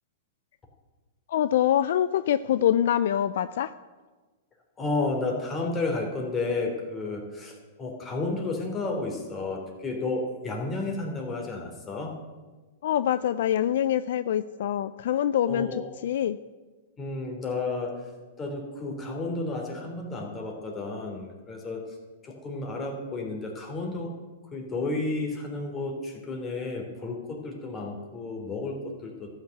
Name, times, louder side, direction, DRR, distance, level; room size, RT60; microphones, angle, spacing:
voice 1, 1.3-3.7 12.8-16.4, left 10 dB, 65° left, 14 dB, 0.4 m, -25 dB
voice 2, 4.8-12.1 15.5-15.8 17.0-18.0 18.4-21.8 22.2-24.1 24.5-29.3, left 3 dB, 20° left, 1 dB, 3.4 m, -32 dB
13.0 x 6.6 x 9.0 m, 1.3 s
hypercardioid pair, 120°, 0 cm